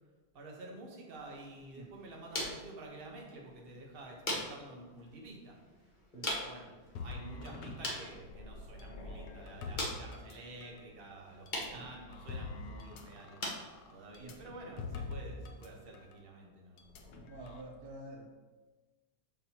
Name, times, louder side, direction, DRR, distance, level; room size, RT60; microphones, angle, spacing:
voice 1, 0.3-5.5 6.2-6.7 7.0-13.4 13.9-17.3, right 2 dB, 35° right, 0 dB, 1.2 m, -50 dB
sound 1, 1.1-16.1, left 1 dB, 30° left, 1.3 m, -44 dB
sound 2, 7.0-10.8 11.5-15.7 15.9-16.1 16.8-17.6, left 3 dB, 70° left, 1.2 m, -45 dB
voice 2, 17.3-18.3, right 2 dB, 70° right, 1 dB, 1.2 m, -48 dB
7.5 x 6.5 x 2.9 m, 1.3 s
omnidirectional pair, 1.8 m